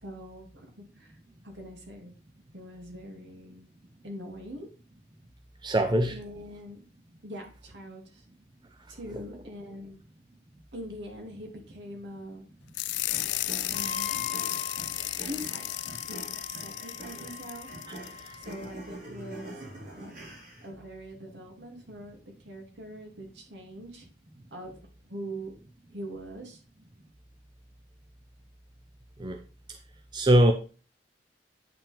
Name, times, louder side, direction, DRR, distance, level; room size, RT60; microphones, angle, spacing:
voice 1, 0.0-1.1 1.4-2.1 2.5-3.7 4.0-4.7 6.1-6.8 7.2-8.2 8.9-10.0 10.7-12.4 13.7-14.1 14.9-15.7 16.0-17.7 18.3-20.2 20.6-24.0 24.5-24.7 25.1-25.6 25.9-26.6, equal, 70° right, 1 dB, 2.5 m, -43 dB
voice 2, 5.6-6.2 17.9-18.0 18.2-18.4 29.2-29.4 30.1-30.5, right 1 dB, 25° right, 6 dB, 0.6 m, -22 dB
sound 1, 12.7-18.5, left 17 dB, 70° left, 0.3 m, -34 dB
sound 2, 13.1-20.7, right 1 dB, 50° right, 3.9 m, -45 dB
Wind instrument woodwind instrument, 13.7-18.7, left 7 dB, 35° left, 1.0 m, -42 dB
8.7 x 5.7 x 3.4 m, 0.36 s
head